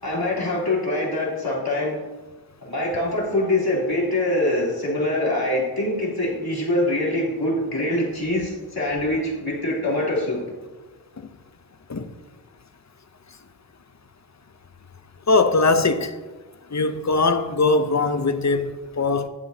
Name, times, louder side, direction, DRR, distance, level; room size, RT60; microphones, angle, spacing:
voice 1, 0.0-2.0 2.6-10.4, left 1 dB, 60° left, 3.1 m, -24 dB
voice 2, 15.3-16.1 16.7-19.3, left 3 dB, 40° left, 0.6 m, -21 dB
11.0 x 7.8 x 2.7 m
wide cardioid pair, 60°, 42 cm